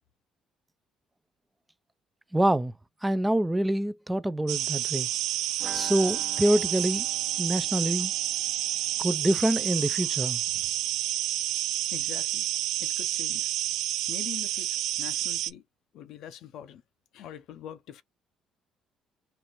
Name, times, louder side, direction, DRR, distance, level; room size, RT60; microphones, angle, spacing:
voice 1, 2.3-2.7 3.0-5.1 5.7-7.1 7.4-8.1 9.0-10.4, right 1 dB, 10° right, 0.3 m, -26 dB
sound 1, 4.5-15.5, right 14 dB, 85° right, 0.4 m, -29 dB
sound 2, 5.6-11.2 11.5-11.6 11.8-11.9, right 5 dB, 50° right, 0.9 m, -47 dB
voice 2, 11.9-12.5 12.8-13.5 14.1-15.6 15.9-16.8 17.1-18.0, left 10 dB, 75° left, 0.6 m, -43 dB
4.2 x 2.5 x 3.0 m
cardioid pair, 90°, 0 cm